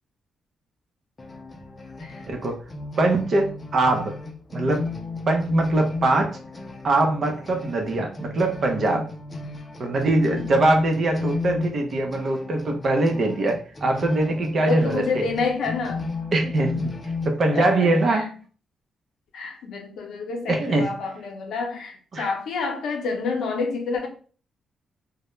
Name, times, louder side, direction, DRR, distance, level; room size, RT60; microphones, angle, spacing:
sound 1, 1.2-17.3, left 3 dB, 30° left, 0.5 m, -34 dB
voice 1, 2.3-2.6 3.0-4.1 4.5-4.9 5.3-6.4 6.8-9.1 9.8-15.2 16.3-16.9 17.3-18.3 20.5-20.9 22.1-22.3, right 2 dB, 55° right, 0.6 m, -22 dB
voice 2, 14.6-16.1 17.5-18.3 19.3-24.1, left 4 dB, 75° left, 0.6 m, -28 dB
2.1 x 2.0 x 3.0 m
supercardioid pair, 55°, 0 cm